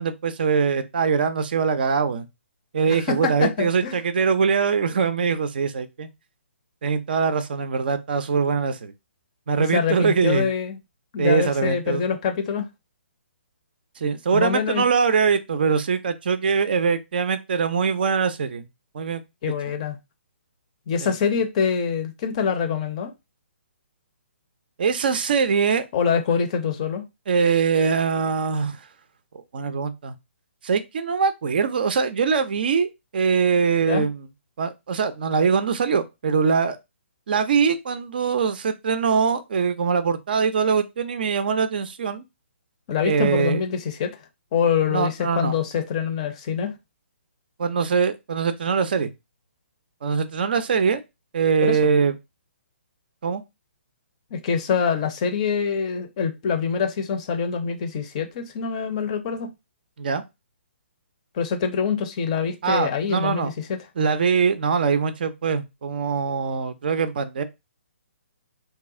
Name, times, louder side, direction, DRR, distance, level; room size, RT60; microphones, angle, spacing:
voice 1, 0.0-2.3 2.7-6.1 6.8-8.9 9.5-10.5 11.2-12.0 14.0-18.7 18.9-19.2 21.0-21.1 24.8-25.8 27.3-28.8 29.3-30.1 30.6-34.3 34.6-36.8 37.3-42.2 43.0-43.6 44.9-45.5 47.6-49.1 50.0-51.0 51.3-52.1 53.2-53.4 60.0-60.2 62.6-63.5 64.0-67.4, right 5 dB, 45° right, 0.4 m, -22 dB
voice 2, 2.9-4.0 9.7-10.8 11.1-12.7 14.3-14.8 19.4-20.0 20.9-23.1 25.9-27.0 33.8-34.0 42.9-44.2 44.5-46.7 51.6-51.8 54.3-59.5 61.3-63.8, left 6 dB, 30° left, 0.5 m, -25 dB
2.9 x 2.3 x 3.6 m
figure-of-eight pair, 130°, 7 cm